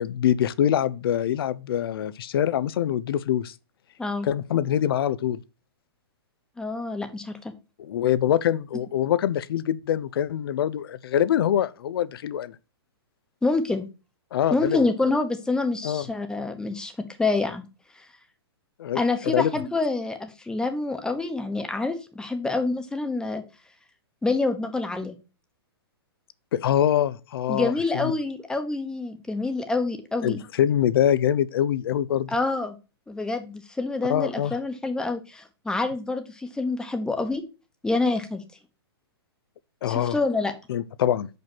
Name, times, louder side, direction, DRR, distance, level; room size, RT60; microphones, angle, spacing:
voice 1, 0.0-3.5 4.2-5.4 7.8-12.6 14.3-14.8 15.8-16.1 18.8-19.5 26.5-28.1 30.2-32.3 34.1-34.5 39.8-40.2 40.7-41.3, left 10 dB, 65° left, 0.6 m, -24 dB
voice 2, 6.6-7.5 13.4-13.8 14.5-17.6 18.0-18.1 18.9-23.4 24.2-25.1 27.5-30.4 32.3-32.8 33.1-37.4 37.8-38.4 39.9-40.5, left 3 dB, 5° left, 1.0 m, -27 dB
5.7 x 5.3 x 6.0 m
hypercardioid pair, 130°, 13 cm